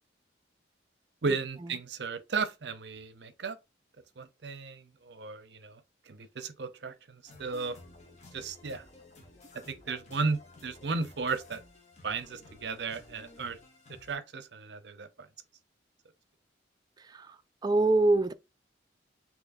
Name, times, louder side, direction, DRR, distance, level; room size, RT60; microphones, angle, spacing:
voice 1, 1.2-3.6 4.2-5.8 6.1-7.8 8.3-8.8 9.7-11.6 12.0-13.6 14.0-15.3, right 4 dB, 65° right, 0.6 m, -35 dB
sound 1, 7.3-14.2, left 2 dB, 40° left, 1.3 m, -54 dB
voice 2, 17.0-18.3, right 2 dB, 20° right, 0.3 m, -26 dB
6.2 x 3.0 x 2.6 m
head